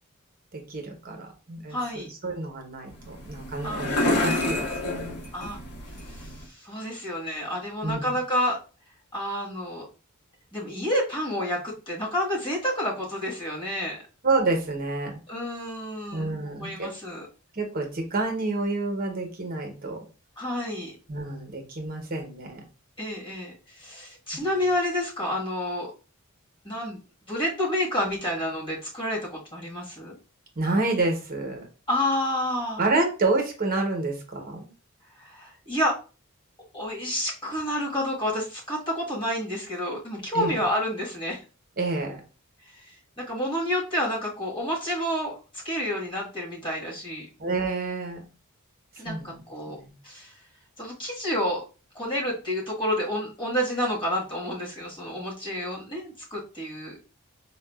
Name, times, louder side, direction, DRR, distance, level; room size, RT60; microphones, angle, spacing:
voice 1, 0.5-5.2 7.8-8.2 14.2-15.2 16.1-16.9 17.5-20.0 21.1-22.6 24.3-24.6 30.6-31.7 32.8-34.7 40.3-40.6 41.8-42.2 47.4-48.2 49.1-49.9, right 3 dB, 45° right, 2 dB, 0.9 m, -29 dB
voice 2, 1.7-2.1 3.6-3.8 5.3-5.6 6.0-8.6 9.1-9.9 10.5-14.0 15.3-17.3 20.4-20.9 23.0-25.9 26.6-27.0 27.3-30.2 31.9-32.8 35.2-36.0 36.7-41.4 42.7-45.4 45.6-47.3 49.0-49.8 50.0-50.3 50.8-51.6 51.9-57.0, equal, 25° left, -5 dB, 1.4 m, -29 dB
sound 1, 2.9-6.5, left 1 dB, 80° left, 1.2 m, -29 dB
4.7 x 2.3 x 2.3 m, 0.34 s
head